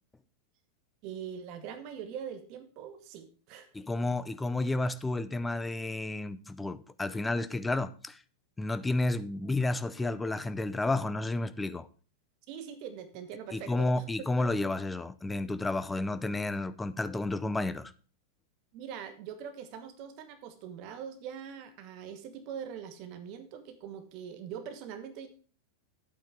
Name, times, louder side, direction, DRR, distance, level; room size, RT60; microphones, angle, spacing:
voice 1, 1.0-3.7 12.5-14.0 14.4-14.5 18.7-25.3, right 8 dB, 40° right, 1.3 m, -42 dB
voice 2, 3.7-8.2 8.6-11.9 13.5-17.9, left 2 dB, 10° left, 0.5 m, -31 dB
10.5 x 8.7 x 3.6 m
figure-of-eight pair, 90°, 0 cm